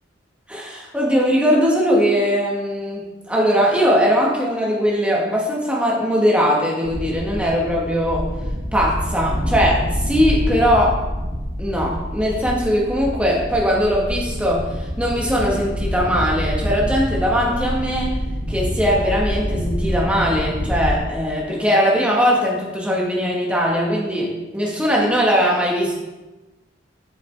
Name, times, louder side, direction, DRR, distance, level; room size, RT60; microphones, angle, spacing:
voice 1, 0.5-8.3 8.7-11.0 11.6-18.2 18.5-25.9, equal, 5° right, -3 dB, 1.4 m, -20 dB
sound 1, 6.8-21.0, equal, 15° left, 2.2 m, -26 dB
7.5 x 6.9 x 3.4 m, 1.1 s
head